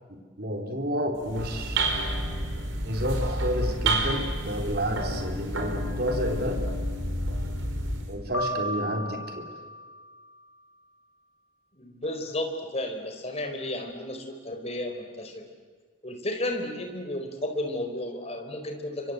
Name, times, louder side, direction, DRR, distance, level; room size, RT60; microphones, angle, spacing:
voice 1, 0.4-1.9 2.9-6.6 8.1-9.5, equal, 50° right, 4 dB, 3.7 m, -30 dB
sound 1, 1.2-8.1, right 1 dB, 75° right, 5.1 m, -29 dB
Piano, 8.3-10.5, equal, 80° left, 4.6 m, -35 dB
voice 2, 11.8-15.4 16.0-19.1, left 1 dB, 30° left, 5 dB, 4.3 m, -33 dB
29.5 x 25.0 x 8.0 m, 1.5 s
head